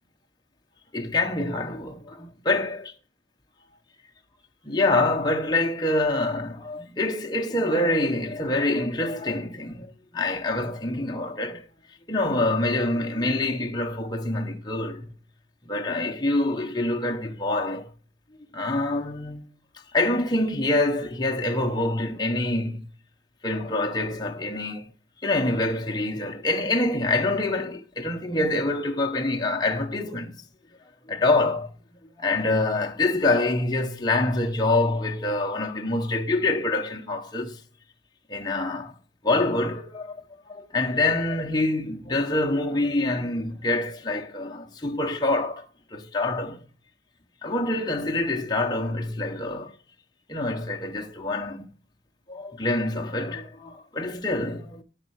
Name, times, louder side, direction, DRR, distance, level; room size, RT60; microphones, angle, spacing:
voice 1, 0.9-2.9 4.6-11.7 12.1-15.1 15.7-17.9 18.5-19.5 19.9-22.9 23.4-24.9 25.2-30.4 31.1-31.7 32.2-37.6 38.3-39.0 39.2-40.2 40.5-45.6 45.9-46.6 47.4-49.7 50.3-51.7 52.3-54.8, left 2 dB, 25° left, 1.1 m, -26 dB
13.5 x 5.6 x 4.8 m
head